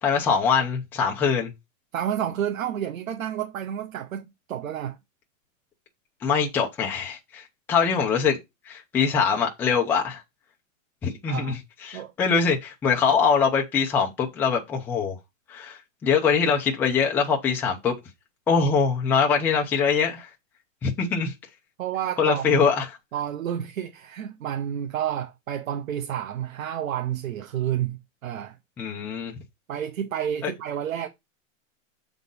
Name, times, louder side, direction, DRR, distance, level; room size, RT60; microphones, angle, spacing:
voice 1, 0.0-1.5 6.2-7.4 7.7-8.4 8.7-10.2 11.0-15.2 15.5-17.9 18.5-20.3 20.8-21.3 22.2-22.9 28.8-29.3 30.4-30.5, left 6 dB, 5° left, 0.5 m, -23 dB
voice 2, 1.9-5.0 11.3-11.6 11.9-12.1 21.8-22.7 23.1-28.5 29.7-31.1, right 10 dB, 75° right, 1.2 m, -30 dB
7.2 x 4.0 x 5.3 m
supercardioid pair, 165°, 40 cm